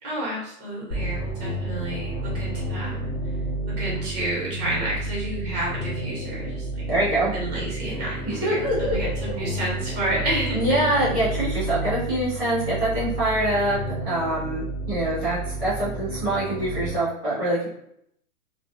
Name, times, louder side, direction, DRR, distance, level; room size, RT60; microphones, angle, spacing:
voice 1, 0.0-3.1 3.8-6.8 7.3-10.9, right 1 dB, 25° right, -5 dB, 0.9 m, -30 dB
sound 1, 0.9-16.9, right 2 dB, 35° left, 0.7 m, -31 dB
voice 2, 6.9-7.3 8.3-9.0 10.5-13.8 14.0-17.7, right 1 dB, 5° right, -30 dB, 0.4 m, -24 dB
2.3 x 2.2 x 2.5 m, 0.73 s
hypercardioid pair, 150°, 48 cm